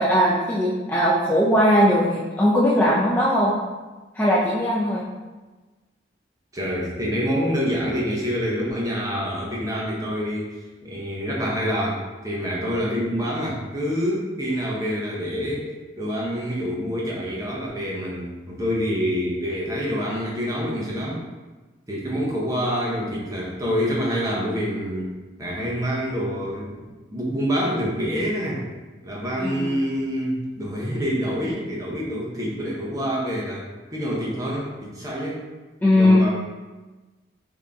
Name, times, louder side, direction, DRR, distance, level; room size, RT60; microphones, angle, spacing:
voice 1, 0.0-3.5 4.2-5.0 29.4-29.7 35.8-36.3, equal, 10° left, -7 dB, 0.3 m, -19 dB
voice 2, 6.5-10.6 10.8-21.2 21.9-25.1 25.4-26.8 27.1-28.6 29.0-35.4 35.9-36.3, equal, 20° right, -5 dB, 0.7 m, -26 dB
3.7 x 2.6 x 3.4 m, 1.2 s
head